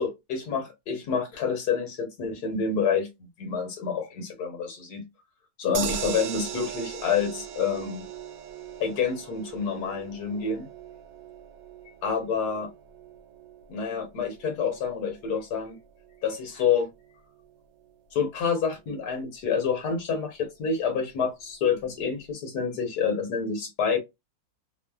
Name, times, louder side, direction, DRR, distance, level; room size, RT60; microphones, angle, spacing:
voice 1, 0.0-3.1 3.4-5.0 5.6-8.0 8.8-10.7 12.0-12.7 13.7-15.7 16.2-16.9 18.1-24.0, left 6 dB, 60° left, 1.3 m, -28 dB
sound 1, 5.7-18.0 18.4-18.5 18.7-18.8, right 9 dB, 80° right, 1.3 m, -40 dB
3.1 x 2.0 x 2.2 m
omnidirectional pair, 2.0 m